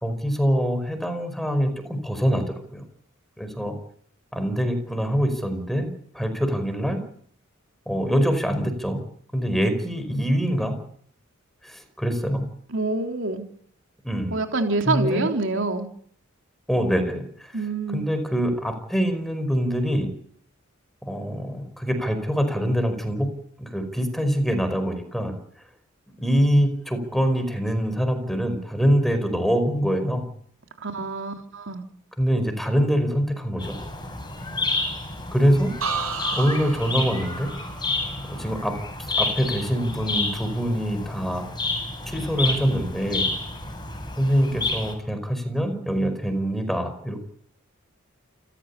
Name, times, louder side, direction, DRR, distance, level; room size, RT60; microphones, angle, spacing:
voice 1, 0.0-2.8 3.4-3.8 4.3-5.9 6.1-7.0 7.9-9.0 9.3-10.8 11.6-12.5 14.0-14.4 14.8-15.3 16.7-17.6 17.9-20.1 21.0-23.3 23.6-25.4 26.2-30.2 32.2-33.8 35.3-35.7 36.3-37.5 38.2-38.8 39.2-41.5 42.0-43.3 44.2-47.2, equal, ahead, 9 dB, 5.0 m, -24 dB
voice 2, 12.7-13.4 14.3-15.9 17.5-18.0 30.8-31.8, right 2 dB, 65° right, 4 dB, 3.5 m, -26 dB
sound 1, 33.6-44.9, left 3 dB, 20° left, 6.7 m, -30 dB
sound 2, 35.8-39.6 40.0-40.5, right 5 dB, 85° right, 7.7 m, -34 dB
28.5 x 14.5 x 8.5 m, 0.62 s
head